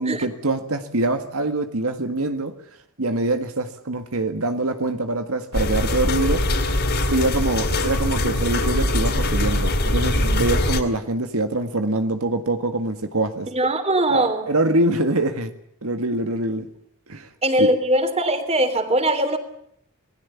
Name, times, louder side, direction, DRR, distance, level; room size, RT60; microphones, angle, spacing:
voice 1, 0.0-2.5 3.0-6.4 7.1-13.5 14.1-15.5 15.8-16.7 17.1-17.3 17.6-17.7, right 2 dB, 75° right, 7 dB, 1.8 m, -24 dB
sound 1, 5.5-10.8, left 1 dB, 50° left, 4.5 m, -22 dB
voice 2, 13.5-14.5 17.4-19.4, right 1 dB, 30° right, 9 dB, 3.5 m, -21 dB
27.5 x 20.5 x 7.1 m, 0.69 s
head